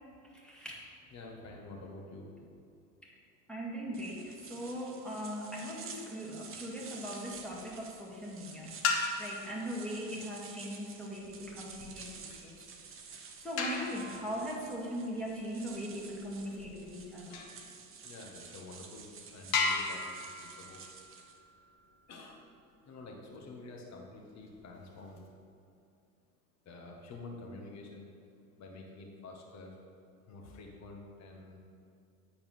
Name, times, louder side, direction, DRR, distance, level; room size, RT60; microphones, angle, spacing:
voice 1, 0.3-0.8 3.0-3.1 3.5-8.8 9.2-12.6 13.4-17.4, equal, ahead, -4 dB, 1.9 m, -40 dB
voice 2, 1.1-2.3 17.3-17.5 18.0-20.8 22.1-22.4 22.8-25.2 26.6-28.1 28.6-29.8 30.3-31.6, left 2 dB, 35° left, 0 dB, 1.5 m, -48 dB
sound 1, 3.9-21.4, right 5 dB, 25° right, 0.9 m, -51 dB
sound 2, 7.3-7.8 8.7-9.6 11.2-17.6 18.3-18.4 18.9-19.0 19.5-22.2 24.3-25.3, left 4 dB, 50° left, 1.5 m, -37 dB
9.4 x 4.3 x 5.6 m, 2.6 s
hypercardioid pair, 95°, 47 cm